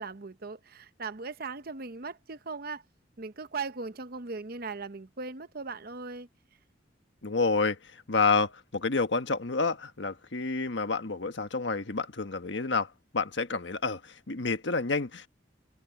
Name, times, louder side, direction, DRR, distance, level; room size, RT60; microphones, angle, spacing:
voice 1, 0.0-2.8 3.2-6.3, right 4 dB, 55° right, 0.9 m, -38 dB
voice 2, 7.2-7.8 8.1-15.3, left 4 dB, 75° left, 1.4 m, -29 dB
head